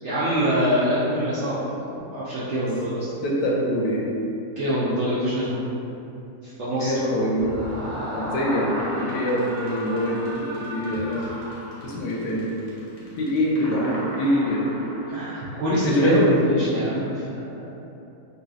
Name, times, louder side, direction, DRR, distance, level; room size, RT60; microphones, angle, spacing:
voice 1, 0.0-1.8 2.1-3.1 4.6-5.7 6.4-7.5 15.1-17.8, equal, 70° right, -10 dB, 0.6 m, -25 dB
voice 2, 3.2-4.1 6.8-7.6 8.1-11.3 11.8-12.5 13.2-14.7 15.7-16.3, equal, 85° left, -3 dB, 1.2 m, -24 dB
Screaming, 7.3-12.2, equal, 40° right, 1.2 m, -36 dB
sound 1, 7.5-15.5, equal, 50° left, 0.4 m, -37 dB
3.9 x 2.6 x 2.3 m, 2.7 s
omnidirectional pair, 1.8 m